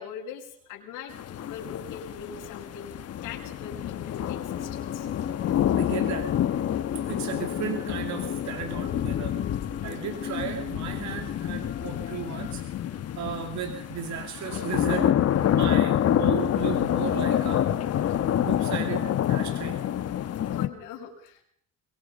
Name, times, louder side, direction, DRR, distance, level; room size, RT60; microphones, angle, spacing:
voice 1, 0.0-5.1 20.2-21.4, left 7 dB, 85° left, 2 dB, 6.2 m, -42 dB
sound 1, 1.1-20.7, left 10 dB, 55° left, 1.5 m, -27 dB
sound 2, 4.5-12.5, left 8 dB, 35° left, 1.0 m, -39 dB
voice 2, 5.2-6.3 7.1-9.4 9.8-12.6 12.9-17.9 18.4-19.8, right 8 dB, 65° right, 5 dB, 2.6 m, -35 dB
23.5 x 23.0 x 5.6 m, 0.65 s
cardioid pair, 115°, 31 cm